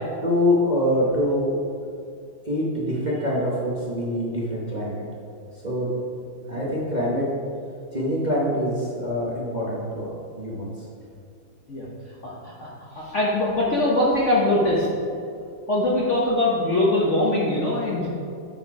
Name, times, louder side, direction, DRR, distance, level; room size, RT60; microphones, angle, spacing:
voice 1, 0.2-1.5 2.5-5.0 5.6-5.9 6.5-7.3 7.9-10.7, left 1 dB, 30° right, -6 dB, 0.8 m, -24 dB
voice 2, 12.2-14.9 15.7-18.1, left 1 dB, 50° left, -5 dB, 0.9 m, -22 dB
9.5 x 4.4 x 4.7 m, 2.5 s
omnidirectional pair, 2.4 m